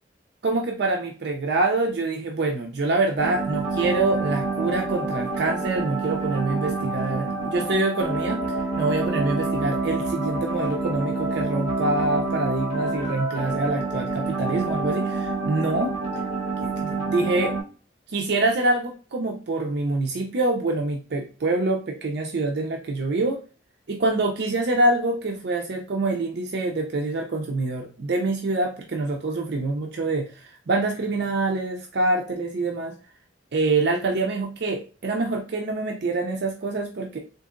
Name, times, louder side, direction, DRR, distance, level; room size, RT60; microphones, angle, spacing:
voice 1, 0.4-15.9 16.6-17.6 18.1-23.4 23.9-33.0 33.5-37.2, right 2 dB, 65° right, 2 dB, 0.5 m, -25 dB
sound 1, 3.2-17.6, right 3 dB, 35° left, 1.5 m, -28 dB
3.9 x 2.5 x 2.4 m, 0.36 s
head